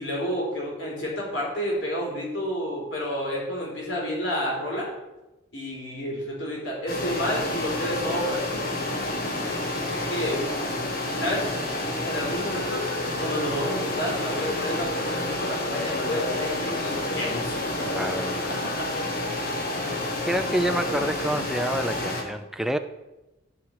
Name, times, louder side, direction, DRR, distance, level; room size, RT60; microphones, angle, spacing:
voice 1, 0.0-4.9 5.5-8.4 9.9-10.4 11.2-11.5 12.0-12.9 13.2-17.9 18.8-18.9, equal, 65° left, 4.2 m, -30 dB
sound 1, 6.9-22.2, left 2 dB, 50° left, 1.5 m, -29 dB
voice 2, 17.8-18.7 19.2-19.4 20.2-22.8, equal, ahead, 0.4 m, -28 dB
13.0 x 5.5 x 4.8 m
head